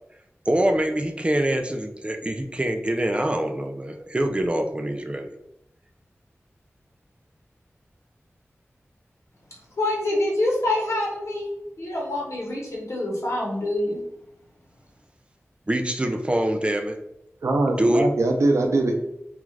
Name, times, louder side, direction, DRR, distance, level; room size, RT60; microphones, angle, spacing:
voice 1, 0.5-5.3 15.7-17.0 17.8-18.1, right 1 dB, 25° right, 5 dB, 0.3 m, -24 dB
voice 2, 9.8-11.5 11.8-14.0, left 1 dB, 75° left, -3 dB, 0.9 m, -26 dB
voice 3, 17.4-19.0, right 2 dB, 90° right, 3 dB, 0.4 m, -21 dB
2.4 x 2.3 x 3.1 m, 0.83 s
wide cardioid pair, 55°, 5 cm